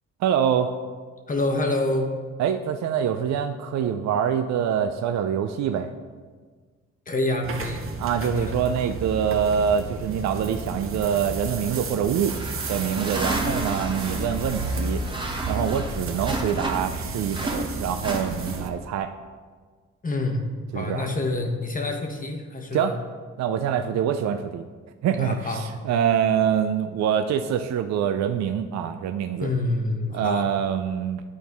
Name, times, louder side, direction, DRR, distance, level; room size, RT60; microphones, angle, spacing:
voice 1, 0.2-0.7 2.4-5.9 8.0-12.4 12.7-15.0 15.5-19.1 20.7-21.1 22.7-23.0 23.4-24.6 25.0-29.5 30.1-31.2, right 8 dB, 65° right, 8 dB, 0.5 m, -25 dB
voice 2, 1.3-2.1 7.1-7.8 8.2-8.6 20.0-20.4 20.7-22.9 25.2-25.6 29.4-30.5, left 2 dB, 25° left, 3 dB, 1.0 m, -27 dB
sound 1, 7.4-18.7, right 2 dB, 45° right, 0.8 m, -32 dB
sound 2, 12.3-17.0 17.3-18.8, right 1 dB, 15° right, 1.1 m, -32 dB
11.0 x 4.3 x 3.5 m, 1.5 s
cardioid pair, 90°, 30 cm